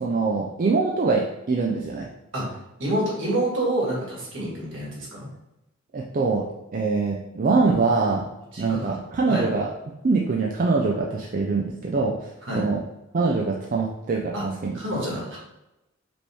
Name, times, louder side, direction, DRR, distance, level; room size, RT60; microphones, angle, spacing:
voice 1, 0.0-2.1 5.9-6.5 6.7-8.3 8.6-9.7 10.0-12.8 13.1-15.0, right 4 dB, 40° right, -1 dB, 0.4 m, -24 dB
voice 2, 2.8-5.3 8.5-8.8 9.3-9.5 12.4-12.7 14.3-14.4 14.7-15.4, right 1 dB, 65° right, -3 dB, 1.6 m, -27 dB
5.2 x 3.0 x 3.4 m, 0.92 s
head